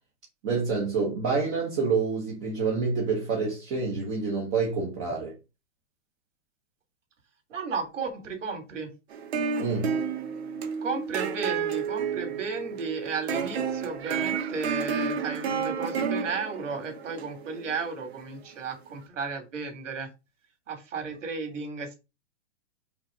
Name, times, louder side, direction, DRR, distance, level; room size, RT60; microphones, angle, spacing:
voice 1, 0.4-5.3 9.6-9.9, right 4 dB, 25° right, 1.2 m, -27 dB
voice 2, 7.5-8.9 10.8-20.1 20.7-21.9, right 4 dB, 85° right, 3.0 m, -34 dB
sound 1, 9.1-18.4, right 6 dB, 60° right, 1.2 m, -31 dB
5.7 x 3.3 x 5.1 m
supercardioid pair, 170°, 36 cm